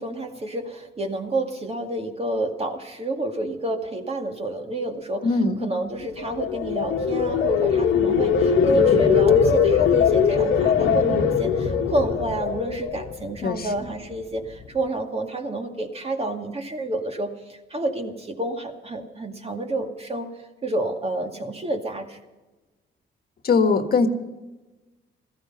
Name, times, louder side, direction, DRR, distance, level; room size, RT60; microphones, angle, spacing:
voice 1, 0.0-5.3 5.6-22.2, right 1 dB, 30° right, 3 dB, 2.2 m, -29 dB
voice 2, 5.2-5.7 13.4-13.7 23.4-24.1, left 4 dB, 50° left, 6 dB, 1.6 m, -21 dB
sound 1, 6.2-13.3 13.7-14.1, left 6 dB, 80° left, 1.6 m, -21 dB
17.0 x 14.0 x 5.7 m, 1.1 s
cardioid pair, 90°, 20 cm